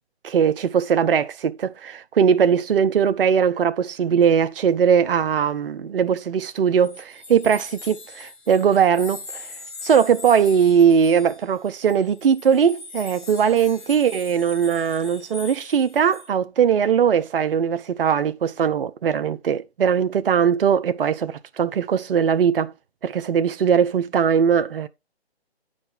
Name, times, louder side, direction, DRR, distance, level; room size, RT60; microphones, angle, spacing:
voice 1, 0.2-9.5 9.8-22.7 23.0-24.9, right 7 dB, 55° right, 0.5 m, -20 dB
sound 1, 6.8-16.3, left 3 dB, 10° left, 1.7 m, -40 dB
8.7 x 5.0 x 3.5 m
figure-of-eight pair, 150°, 33 cm